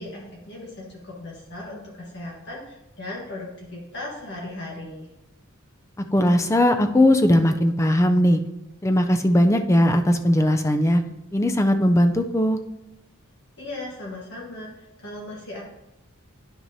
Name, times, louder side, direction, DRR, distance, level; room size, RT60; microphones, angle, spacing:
voice 1, 0.0-5.1 13.6-15.6, left 2 dB, 55° left, -3 dB, 1.4 m, -37 dB
voice 2, 6.1-8.4 8.8-11.0 11.3-12.6, left 1 dB, 15° left, 7 dB, 0.4 m, -19 dB
10.5 x 6.0 x 2.7 m, 0.93 s
head